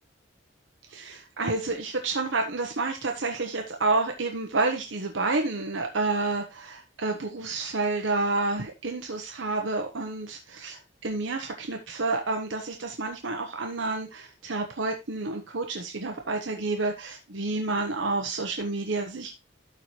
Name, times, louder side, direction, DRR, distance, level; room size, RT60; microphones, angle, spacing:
voice 1, 0.9-19.4, right 3 dB, 80° right, 4 dB, 1.0 m, -29 dB
12.5 x 4.4 x 3.1 m, 0.24 s
head